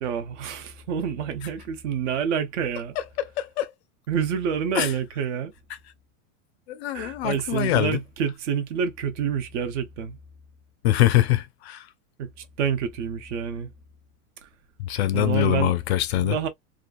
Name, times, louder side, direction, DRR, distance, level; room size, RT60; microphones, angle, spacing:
voice 1, 0.0-3.0 4.1-5.5 6.9-10.2 12.2-12.3 12.6-13.7 14.4-14.5 15.1-15.7 16.2-16.5, right 7 dB, 55° right, 0.9 m, -28 dB
voice 2, 3.4-3.7 4.7-4.9 6.7-8.0 10.8-11.9 14.8-16.4, left 14 dB, 50° left, 0.5 m, -23 dB
2.9 x 2.4 x 2.4 m
supercardioid pair, 160°, 42 cm